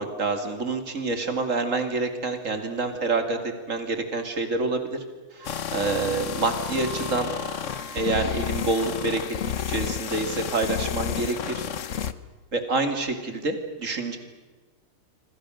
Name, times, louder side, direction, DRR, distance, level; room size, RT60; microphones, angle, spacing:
voice 1, 0.0-3.4 3.7-5.0 5.3-7.3 7.9-9.2 9.7-11.6 12.5-14.2, right 3 dB, 35° right, 6 dB, 2.9 m, -27 dB
sound 1, 5.4-12.1, left 8 dB, 55° left, 0.8 m, -31 dB
Wind instrument woodwind instrument, 5.4-9.3, right 6 dB, 80° right, 7.5 m, -44 dB
26.5 x 26.0 x 6.5 m, 1.2 s
omnidirectional pair, 2.4 m